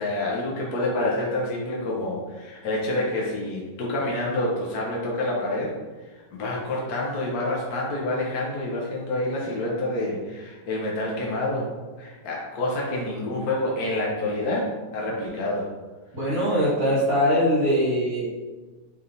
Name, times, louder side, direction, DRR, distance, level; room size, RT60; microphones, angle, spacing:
voice 1, 0.0-5.7 6.3-15.7, left 1 dB, 55° left, -3 dB, 1.6 m, -28 dB
voice 2, 16.1-18.3, equal, 80° right, -8 dB, 3.1 m, -22 dB
9.3 x 3.6 x 4.1 m, 1.3 s
omnidirectional pair, 2.0 m